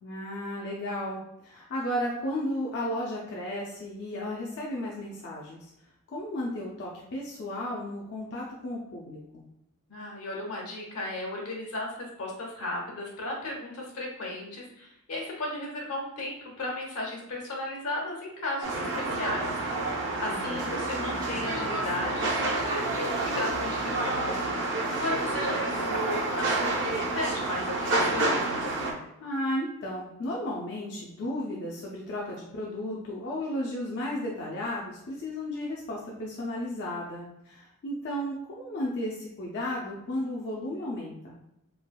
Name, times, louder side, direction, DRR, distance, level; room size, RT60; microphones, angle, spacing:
voice 1, 0.0-5.7 6.1-9.4 20.3-20.7 29.2-41.4, left 1 dB, 50° left, -3 dB, 0.4 m, -34 dB
voice 2, 9.9-19.9 20.2-24.4 24.7-28.5, left 1 dB, 80° left, -2 dB, 0.9 m, -35 dB
sound 1, 18.6-28.9, right 2 dB, 55° right, 0.5 m, -29 dB
3.2 x 2.8 x 2.2 m, 0.82 s
head